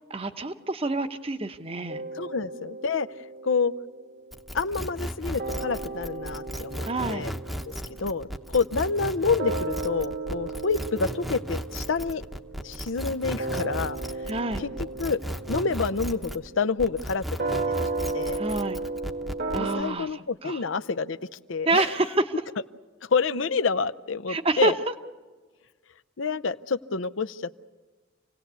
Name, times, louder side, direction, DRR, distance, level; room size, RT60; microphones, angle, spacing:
voice 1, 0.1-2.0 6.8-7.3 14.3-14.6 18.4-18.8 19.5-20.6 21.6-22.3 24.3-24.7, right 2 dB, 30° right, 9 dB, 0.9 m, -27 dB
sound 1, 1.9-5.1 5.4-19.8, right 3 dB, 55° right, 1.5 m, -35 dB
voice 2, 2.1-3.1 3.4-3.7 4.5-7.3 7.7-12.2 12.6-14.0 14.6-14.7 15.0-15.2 15.5-17.5 18.1-18.4 19.5-21.2 21.5-21.9 23.1-24.8 26.2-27.5, left 4 dB, 80° left, 14 dB, 0.7 m, -28 dB
sound 2, 4.3-16.5 16.8-19.7, equal, ahead, 0.9 m, -35 dB
27.5 x 17.5 x 8.2 m, 1.4 s
head